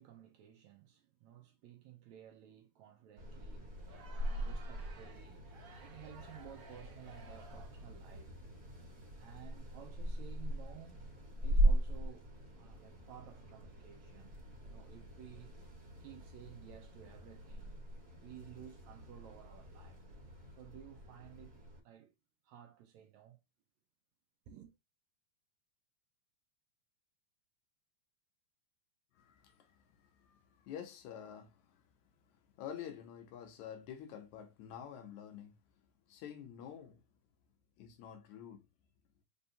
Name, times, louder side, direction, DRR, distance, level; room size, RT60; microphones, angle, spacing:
voice 1, 0.0-3.7 4.2-5.5 5.8-8.4 9.2-11.1 11.4-15.5 16.0-20.0 20.6-22.1 22.4-23.4 24.5-24.7, right 11 dB, 75° right, 1.8 m, -55 dB
sound 1, 3.2-21.8, right 1 dB, 35° right, 1.7 m, -39 dB
Crowd, 3.7-7.9, right 3 dB, 50° right, 1.4 m, -58 dB
voice 2, 29.1-31.8 32.3-35.5 36.1-37.0 37.8-38.6, left 9 dB, 75° left, 2.0 m, -49 dB
5.1 x 3.5 x 2.7 m
omnidirectional pair, 3.7 m